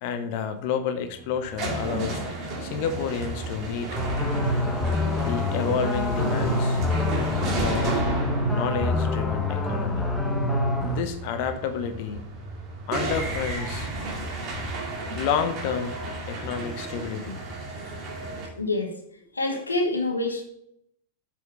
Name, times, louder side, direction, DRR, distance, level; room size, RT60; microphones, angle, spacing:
voice 1, 0.0-2.2 2.6-4.0 5.2-6.8 7.6-8.0 8.5-10.1 10.8-12.3 12.9-13.9 15.1-16.0 16.3-17.4, left 7 dB, 45° left, 8 dB, 0.9 m, -30 dB
sound 1, 1.0-18.5, right 2 dB, 35° right, 2.3 m, -33 dB
sound 2, 3.9-11.0, left 2 dB, 5° left, 1.1 m, -26 dB
voice 2, 18.5-18.9 19.3-20.4, left 2 dB, 80° left, 4 dB, 1.2 m, -26 dB
7.8 x 5.4 x 4.6 m, 0.74 s
figure-of-eight pair, 90°, 0 cm